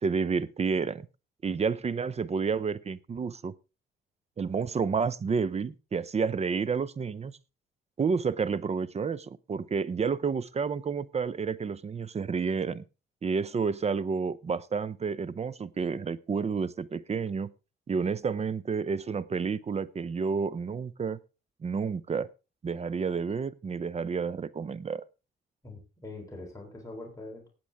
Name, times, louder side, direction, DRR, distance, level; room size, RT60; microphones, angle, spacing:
voice 1, 0.0-1.0 1.4-3.5 4.4-7.4 8.0-12.8 13.2-17.5 17.9-21.2 21.6-22.3 22.6-25.0, right 5 dB, 35° right, 19 dB, 0.7 m, -30 dB
voice 2, 25.6-27.5, left 2 dB, 15° left, 0 dB, 3.8 m, -43 dB
18.5 x 7.7 x 3.5 m, 0.30 s
cardioid pair, 90°, 20 cm